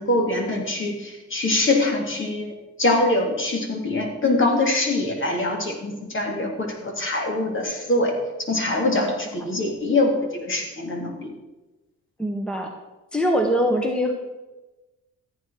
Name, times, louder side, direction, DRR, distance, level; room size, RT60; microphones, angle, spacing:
voice 1, 0.0-2.5 2.8-8.2 8.5-11.3, left 2 dB, 40° left, 1 dB, 3.4 m, -23 dB
voice 2, 12.2-12.7 13.1-14.1, equal, 5° left, 3 dB, 1.7 m, -23 dB
14.0 x 9.2 x 5.9 m, 1.1 s
cardioid pair, 90°, 30 cm